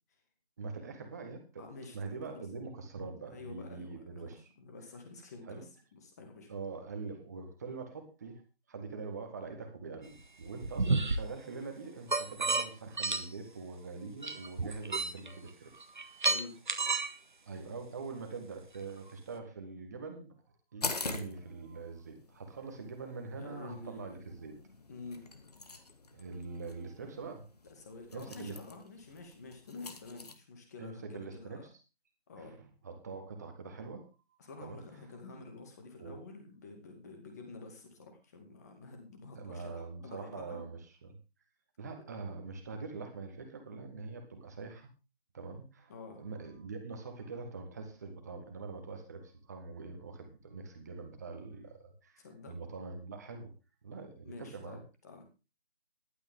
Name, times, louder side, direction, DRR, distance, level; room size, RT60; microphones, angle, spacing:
voice 1, 0.6-1.6 1.9-4.5 5.4-5.7 6.5-8.4 8.7-15.7 17.4-20.3 20.7-24.6 26.1-27.5 28.1-28.6 30.8-31.7 32.4-34.1 34.6-34.8 36.0-36.2 39.3-41.2 41.8-44.9 45.3-53.5 53.8-54.8, right 4 dB, 15° right, 5 dB, 1.7 m, -44 dB
voice 2, 1.6-2.4 3.3-6.5 16.2-16.6 23.4-24.3 24.9-25.3 27.8-31.7 32.3-32.6 34.4-40.7 45.9-46.2 52.2-52.5 54.2-55.2, left 3 dB, 15° left, 4 dB, 2.3 m, -49 dB
sound 1, 10.2-11.2 12.1-12.7 13.0-13.3 14.2-15.3 15.8-17.1, right 3 dB, 50° right, 1.5 m, -31 dB
sound 2, 20.8-30.3, left 3 dB, 40° left, 1.7 m, -45 dB
15.0 x 12.5 x 3.7 m, 0.31 s
figure-of-eight pair, 160°, 32 cm